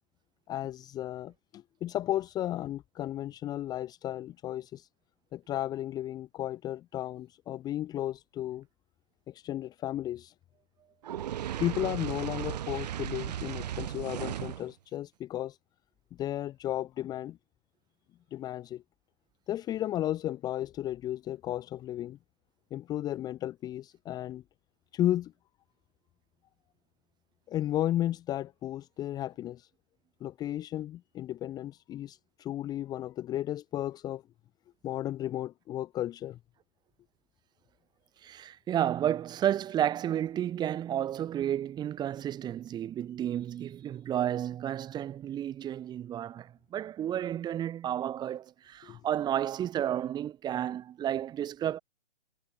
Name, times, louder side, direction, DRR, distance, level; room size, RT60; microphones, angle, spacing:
voice 1, 0.5-4.9 5.3-8.7 9.3-10.3 11.6-15.6 16.1-17.4 18.3-18.8 19.5-22.2 22.7-24.4 24.9-25.3 27.5-29.7 30.2-34.2 34.8-36.4 48.8-49.0, left 13 dB, 10° left, 1.4 m, -34 dB
Fire, 11.0-14.7, right 11 dB, 40° right, 1.7 m, -36 dB
voice 2, 38.2-51.8, right 11 dB, 10° right, 3.0 m, -32 dB
figure-of-eight pair, 135°, 34 cm